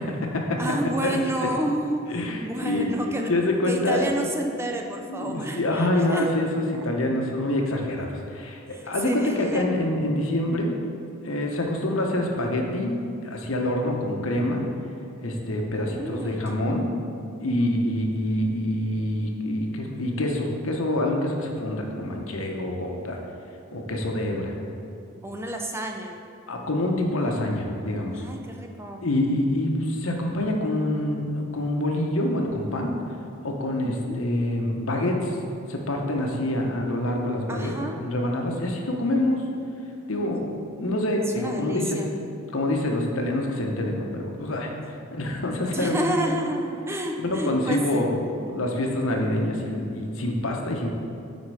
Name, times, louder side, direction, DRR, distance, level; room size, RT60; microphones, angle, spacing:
voice 1, 0.0-0.6 1.0-1.2 2.1-2.9 3.3-4.1 5.1-10.8 11.2-13.0 13.2-14.6 15.2-16.9 17.4-23.2 23.7-24.5 26.5-28.2 29.0-32.9 33.4-35.4 35.7-37.7 38.0-39.4 40.1-40.5 40.8-42.0 42.5-44.7 45.1-46.1 47.2-48.2 48.5-50.9, left 1 dB, 75° left, 1 dB, 1.0 m, -26 dB
voice 2, 0.6-3.3 3.7-6.3 8.7-9.7 15.9-16.5 25.2-26.2 28.1-29.0 33.8-34.2 37.5-38.0 41.3-42.1 45.7-48.1 48.4-48.6, right 1 dB, 10° right, 2 dB, 0.4 m, -30 dB
9.4 x 4.3 x 4.9 m, 2.5 s
head